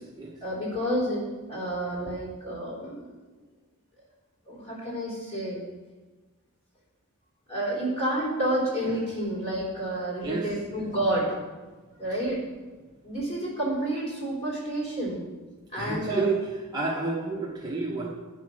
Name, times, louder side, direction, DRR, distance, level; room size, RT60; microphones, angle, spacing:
voice 1, 0.4-3.0 4.5-5.6 7.5-11.3 12.0-12.5 13.0-15.2 15.7-16.3, right 1 dB, 25° left, -7 dB, 3.7 m, -29 dB
voice 2, 10.2-10.9 15.7-16.4 16.7-18.1, right 3 dB, 20° right, -4 dB, 0.9 m, -30 dB
9.7 x 5.7 x 6.3 m, 1.3 s
head